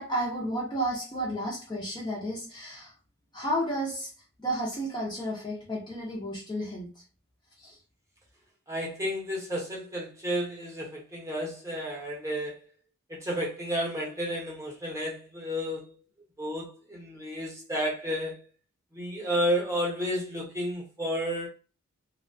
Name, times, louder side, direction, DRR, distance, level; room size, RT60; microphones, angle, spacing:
voice 1, 0.0-2.9 3.3-4.1 4.4-7.0 7.6-7.8, equal, 20° left, 0.5 m, -32 dB
voice 2, 8.7-12.6 13.1-15.9 16.4-18.4 18.9-21.5, equal, 15° right, 0.8 m, -31 dB
2.7 x 2.2 x 2.6 m
head